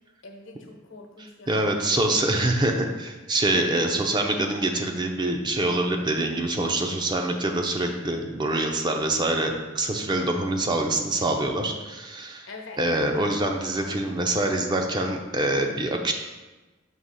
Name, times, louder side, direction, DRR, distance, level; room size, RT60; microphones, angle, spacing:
voice 1, 0.2-2.0 2.5-2.7 12.5-12.8, left 3 dB, 80° left, 2 dB, 1.0 m, -44 dB
voice 2, 1.5-12.5 12.8-16.1, right 2 dB, 20° right, 3 dB, 0.5 m, -25 dB
6.3 x 2.9 x 5.5 m, 1.2 s
head